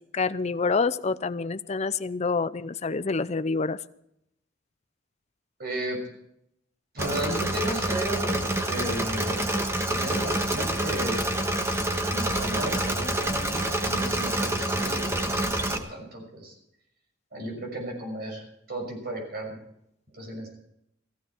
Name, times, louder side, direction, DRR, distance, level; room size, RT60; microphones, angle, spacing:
voice 1, 0.1-3.8, left 4 dB, 35° left, 13 dB, 0.5 m, -27 dB
voice 2, 5.6-6.0 6.9-11.3 11.9-16.5 17.3-18.4 18.7-19.6 20.1-20.6, right 1 dB, 55° right, 1 dB, 6.1 m, -34 dB
Engine / Mechanisms, 7.0-15.8, right 1 dB, 15° right, 1.4 m, -27 dB
16.0 x 15.5 x 4.5 m, 0.78 s
head